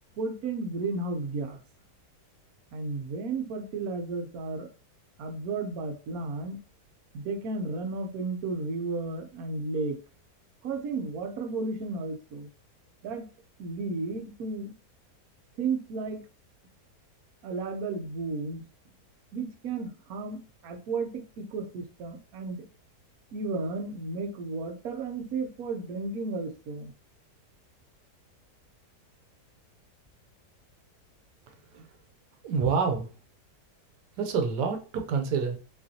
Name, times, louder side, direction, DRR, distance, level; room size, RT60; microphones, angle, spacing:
voice 1, 0.2-1.6 2.7-4.7 5.2-6.6 7.1-10.0 10.6-12.5 13.0-13.3 13.6-14.7 15.6-16.2 17.4-18.6 19.3-22.6 23.3-26.9, right 3 dB, 65° right, 6 dB, 1.2 m, -33 dB
voice 2, 32.4-33.1 34.2-35.6, right 5 dB, 85° right, 5 dB, 1.4 m, -27 dB
5.2 x 3.1 x 2.8 m, 0.36 s
omnidirectional pair, 1.8 m